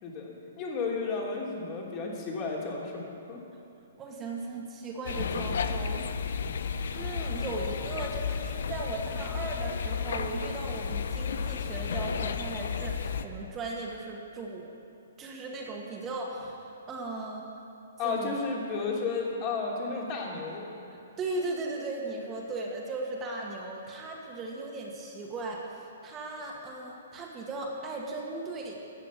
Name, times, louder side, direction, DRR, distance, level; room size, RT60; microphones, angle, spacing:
voice 1, 0.0-3.0 3.3-3.4 18.0-20.7, left 4 dB, 35° left, -2 dB, 2.9 m, -32 dB
voice 2, 4.0-6.1 6.9-14.7 15.2-17.5 18.0-18.3 21.2-28.8, right 2 dB, 20° right, -2 dB, 1.8 m, -37 dB
sound 1, 5.0-13.2, left 6 dB, 65° left, 0.7 m, -32 dB
14.0 x 6.6 x 8.4 m, 2.7 s
hypercardioid pair, 125°, 0 cm